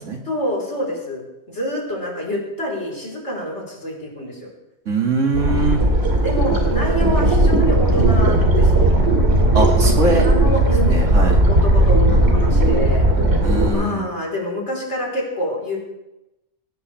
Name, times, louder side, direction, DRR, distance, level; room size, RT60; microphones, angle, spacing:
voice 1, 0.2-4.5 6.1-8.9 10.1-13.1 13.7-15.8, equal, 65° left, -1 dB, 4.7 m, -27 dB
voice 2, 4.9-5.8 9.5-10.3 10.5-11.4 13.4-14.1, right 2 dB, 85° right, 1 dB, 2.8 m, -22 dB
sound 1, 5.3-13.7, right 1 dB, 60° right, 3.0 m, -16 dB
19.5 x 18.5 x 3.5 m, 0.93 s
omnidirectional pair, 1.3 m